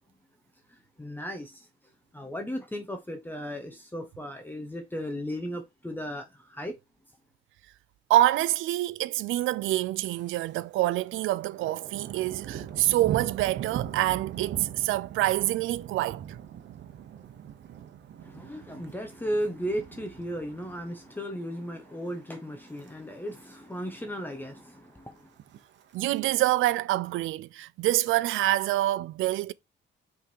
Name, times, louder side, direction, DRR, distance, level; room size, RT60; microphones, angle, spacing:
voice 1, 1.0-1.6 2.1-6.7 18.2-25.1, equal, 10° left, 1.1 m, -35 dB
voice 2, 8.1-16.2 25.9-29.5, right 15 dB, 85° right, 0.4 m, -26 dB
Thunder, 10.1-10.6 10.9-21.3 21.6-22.0 22.4-22.9 23.2-23.3 23.4-23.5 23.9-24.5 25.2-26.2, right 10 dB, 65° right, 1.0 m, -40 dB
5.6 x 3.7 x 4.6 m
cardioid pair, 90°, 20 cm